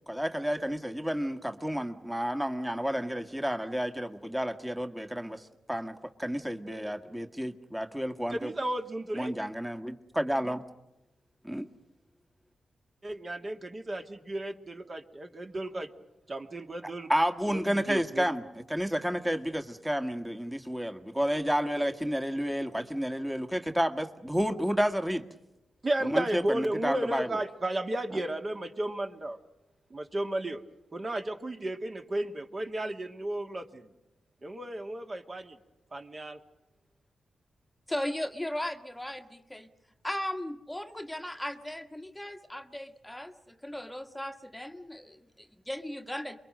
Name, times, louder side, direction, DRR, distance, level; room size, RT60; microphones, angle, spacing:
voice 1, 0.1-8.5 9.1-10.6 11.4-11.7 17.1-25.2 26.0-27.3, equal, 10° right, 7 dB, 1.6 m, -31 dB
voice 2, 8.3-9.3 13.0-15.9 16.3-17.1 17.5-18.3 25.8-29.4 29.9-30.6 30.9-33.9 34.4-35.6 35.9-36.4, right 1 dB, 40° right, 4 dB, 2.3 m, -33 dB
voice 3, 37.9-39.7 40.0-46.4, left 1 dB, 10° left, 6 dB, 1.3 m, -37 dB
28.0 x 22.5 x 6.5 m, 0.96 s
cardioid pair, 55°, 0 cm